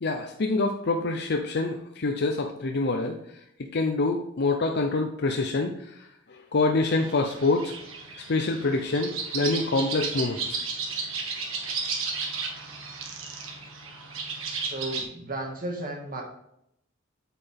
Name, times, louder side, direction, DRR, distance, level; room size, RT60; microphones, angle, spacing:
voice 1, 0.0-3.2 3.7-5.7 6.5-7.7 8.3-10.6, left 3 dB, 55° left, 3 dB, 0.6 m, -26 dB
sound 1, 6.9-15.0, right 4 dB, 75° right, 1.6 m, -34 dB
voice 2, 14.6-16.2, right 1 dB, 45° right, 1 dB, 1.9 m, -34 dB
8.3 x 7.8 x 3.5 m, 0.76 s
head